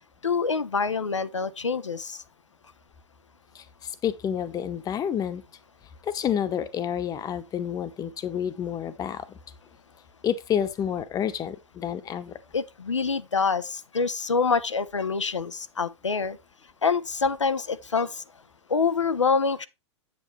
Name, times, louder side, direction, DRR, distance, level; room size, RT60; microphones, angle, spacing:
voice 1, 0.2-2.2 12.5-16.4 16.8-18.2 18.7-19.7, left 5 dB, 90° left, 0.7 m, -26 dB
voice 2, 3.5-5.4 6.0-9.4 10.2-12.4, left 9 dB, 25° left, 1.0 m, -29 dB
8.1 x 7.8 x 3.2 m
figure-of-eight pair, 100°, 15 cm